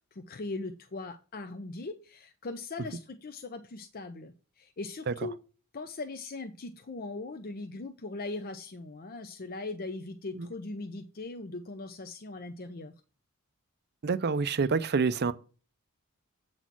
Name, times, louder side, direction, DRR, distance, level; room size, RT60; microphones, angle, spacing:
voice 1, 0.1-5.4 5.7-12.9, left 3 dB, 45° left, 0.6 m, -40 dB
voice 2, 14.0-15.3, right 4 dB, 50° right, 0.5 m, -27 dB
8.1 x 4.3 x 5.9 m
head